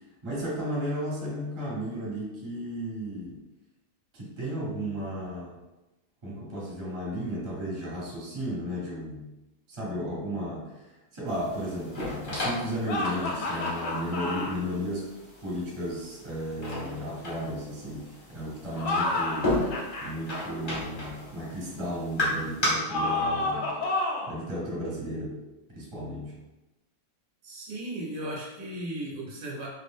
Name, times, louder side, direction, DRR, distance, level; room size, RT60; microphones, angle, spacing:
voice 1, 0.2-3.4 4.1-5.5 6.2-9.3 9.7-15.1 15.4-19.7 20.0-23.7 24.3-25.4 25.8-26.3, equal, 25° right, -5 dB, 0.7 m, -34 dB
sound 1, 11.3-22.7, left 1 dB, 40° left, 1.0 m, -35 dB
sound 2, 12.9-14.6 18.7-20.1 22.9-24.4, left 2 dB, 70° left, 0.9 m, -30 dB
voice 2, 27.4-29.7, right 1 dB, 70° right, -3 dB, 1.1 m, -36 dB
2.5 x 2.4 x 3.5 m, 1.0 s
omnidirectional pair, 1.5 m